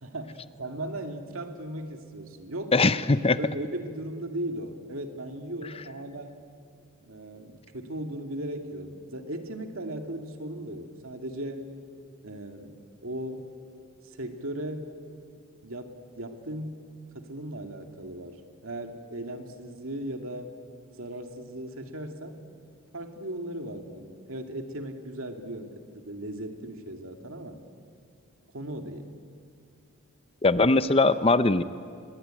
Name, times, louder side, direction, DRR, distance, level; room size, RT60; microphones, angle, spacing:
voice 1, 0.0-2.9 3.4-6.4 7.0-11.7 12.2-13.5 14.0-15.0 15.6-16.9 17.1-20.5 21.0-22.4 22.9-27.6 28.5-29.1, right 1 dB, 75° right, 5 dB, 2.4 m, -37 dB
voice 2, 2.7-3.4 30.4-31.6, left 3 dB, 25° left, 14 dB, 0.6 m, -21 dB
27.5 x 21.5 x 9.0 m, 2.3 s
head